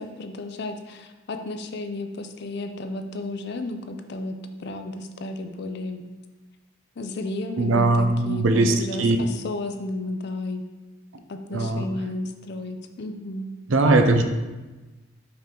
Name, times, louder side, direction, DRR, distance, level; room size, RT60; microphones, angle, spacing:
voice 1, 0.0-6.0 7.0-10.6 11.3-13.5, left 2 dB, 50° left, 7 dB, 0.5 m, -33 dB
voice 2, 7.6-9.2 11.5-11.8 13.7-14.3, right 2 dB, 65° right, 6 dB, 0.6 m, -20 dB
5.7 x 4.4 x 3.8 m, 1.2 s
head